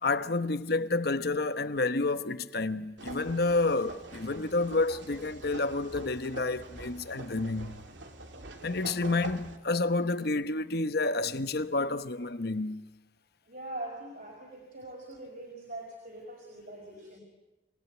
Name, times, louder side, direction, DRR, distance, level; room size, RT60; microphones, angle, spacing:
voice 1, 0.0-7.8 8.6-12.8, left 3 dB, 60° left, 1.0 m, -29 dB
sound 1, 3.0-9.6, right 2 dB, 90° right, 2.7 m, -45 dB
voice 2, 13.5-17.2, right 1 dB, 50° right, 5.2 m, -42 dB
28.0 x 18.5 x 9.5 m
head